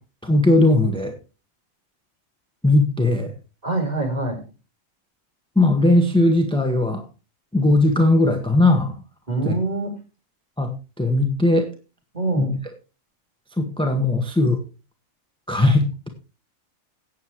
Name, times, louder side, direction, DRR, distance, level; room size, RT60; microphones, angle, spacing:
voice 1, 0.2-1.1 2.6-3.3 5.5-7.0 7.5-8.9 9.4-9.5 10.6-10.7 11.0-11.7 12.4-12.5 13.6-14.6 15.5-16.1, left 2 dB, 5° left, 4 dB, 1.5 m, -18 dB
voice 2, 3.6-4.4 9.3-10.0 12.1-12.6, right 2 dB, 30° right, 2 dB, 4.1 m, -25 dB
17.0 x 8.3 x 3.2 m, 0.31 s
omnidirectional pair, 1.4 m